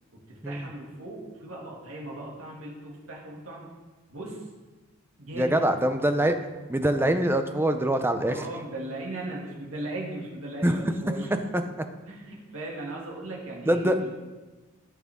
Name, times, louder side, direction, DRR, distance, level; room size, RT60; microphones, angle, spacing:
voice 1, 0.3-3.6 4.1-4.4 5.2-5.6 8.2-11.3 12.1-14.2, right 1 dB, 75° right, -3 dB, 2.3 m, -38 dB
voice 2, 5.3-6.4 6.7-8.4 10.6-10.8 11.5-11.6 13.7-14.0, right 1 dB, 10° right, 8 dB, 0.6 m, -24 dB
14.5 x 6.0 x 3.6 m, 1.2 s
head